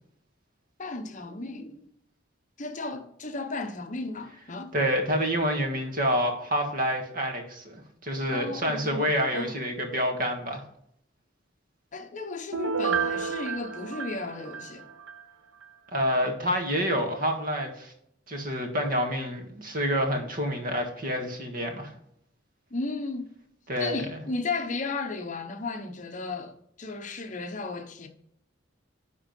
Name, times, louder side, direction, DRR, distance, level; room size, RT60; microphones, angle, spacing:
voice 1, 0.8-1.8 2.6-4.7 8.3-9.5 11.9-14.9 22.7-23.3 23.8-28.1, left 3 dB, 40° left, 0.9 m, -34 dB
voice 2, 4.7-10.6 15.9-17.9 18.3-21.9 23.7-24.2, equal, 50° right, 1.7 m, -28 dB
Piano, 12.5-15.2 15.6-15.7, right 6 dB, 90° right, 0.8 m, -31 dB
10.5 x 3.7 x 5.3 m
head